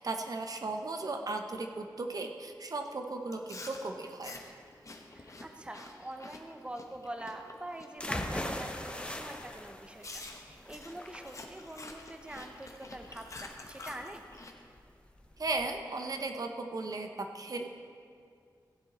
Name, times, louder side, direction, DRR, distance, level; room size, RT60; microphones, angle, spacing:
voice 1, 0.0-4.3 15.4-17.7, right 3 dB, 50° right, 4 dB, 0.8 m, -36 dB
Chewing mastication, 3.3-8.1 8.5-8.8 9.3-9.4 10.0-14.5, left 2 dB, 40° left, 1.1 m, -48 dB
voice 2, 5.1-14.2, right 1 dB, 15° right, 5 dB, 0.8 m, -45 dB
sound 1, 8.0-15.7, left 1 dB, 15° left, 0.9 m, -41 dB
15.5 x 7.6 x 4.2 m, 2.3 s
cardioid pair, 65°, 8 cm